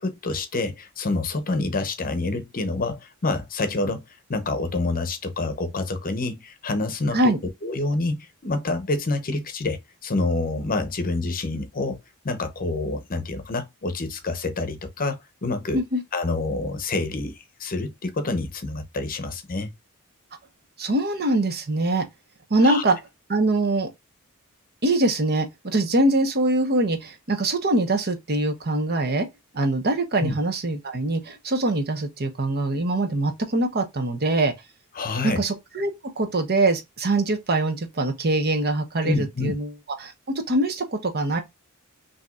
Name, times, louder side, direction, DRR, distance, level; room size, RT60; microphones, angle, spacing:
voice 1, 0.2-4.0 4.3-7.3 7.6-12.0 12.2-15.8 16.1-17.3 17.6-19.7 22.6-22.8 30.2-30.3 34.9-35.4 39.0-39.6, left 2 dB, 40° left, 0.8 m, -27 dB
voice 2, 20.8-22.1 22.5-23.0 23.3-23.9 24.8-29.3 29.5-34.5 35.2-35.9 36.2-39.7 40.0-41.4, right 2 dB, 45° right, 1.1 m, -23 dB
5.8 x 2.9 x 2.4 m
head